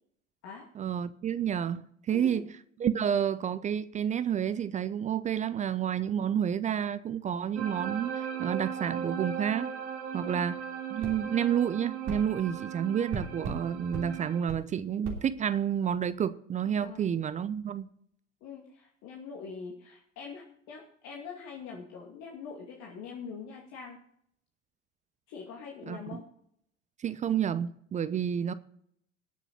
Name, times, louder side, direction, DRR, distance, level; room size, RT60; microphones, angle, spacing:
voice 1, 0.8-2.5 2.8-9.7 10.1-10.6 10.9-17.9 25.9-26.2 27.0-28.5, right 9 dB, 20° right, 0.5 m, -30 dB
sound 1, 7.6-14.4, right 8 dB, 60° right, 2.0 m, -38 dB
sound 2, 11.0-11.2 12.0-12.2 13.1-13.6 13.9-14.1 14.5-14.6 15.0-15.2, right 3 dB, 40° right, 3.2 m, -36 dB
voice 2, 16.7-17.1 18.4-24.0 25.3-26.2, left 5 dB, 45° left, 2.4 m, -44 dB
19.5 x 7.0 x 4.2 m
figure-of-eight pair, 75°, 38 cm